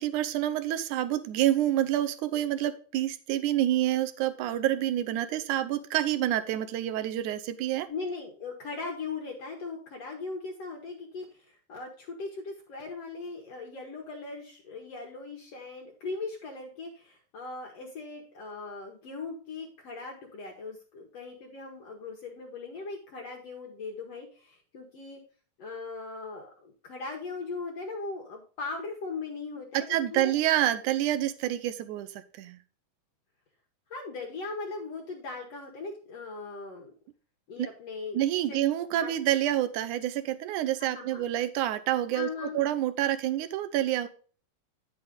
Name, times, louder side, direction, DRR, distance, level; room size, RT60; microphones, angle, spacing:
voice 1, 0.0-7.9 29.9-32.6 37.6-37.7 38.1-44.1, right 12 dB, 80° right, 12 dB, 2.0 m, -28 dB
voice 2, 7.9-11.3 11.7-25.2 25.6-30.3 33.9-36.9 37.5-38.2 38.5-38.7 39.0-39.1 40.8-41.2 42.1-42.7, left 3 dB, 55° left, 0 dB, 2.1 m, -39 dB
9.9 x 6.1 x 3.8 m, 0.40 s
omnidirectional pair, 3.9 m